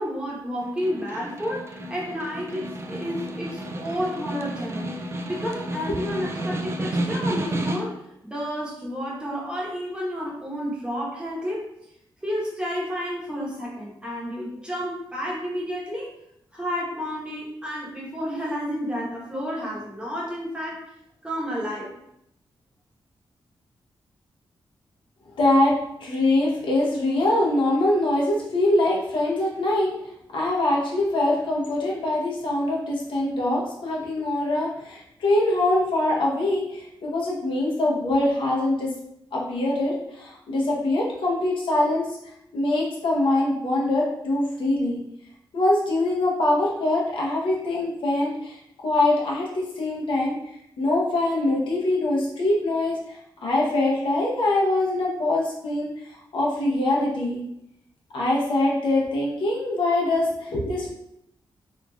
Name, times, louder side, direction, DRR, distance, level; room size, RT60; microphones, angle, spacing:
voice 1, 0.0-4.9 5.3-8.0 8.2-11.6 12.2-16.1 16.5-20.8 21.2-22.0, equal, 10° right, -5 dB, 0.9 m, -31 dB
Snare drum, 0.6-8.1, right 1 dB, 30° right, 0.3 m, -31 dB
voice 2, 25.4-29.9 30.3-38.9 39.3-42.0 42.5-45.0 45.5-48.6 48.8-50.4 50.8-55.9 56.3-57.4 58.1-60.9, left 2 dB, 75° left, -3 dB, 0.7 m, -23 dB
3.0 x 2.4 x 2.3 m, 0.78 s
cardioid pair, 70°, 9 cm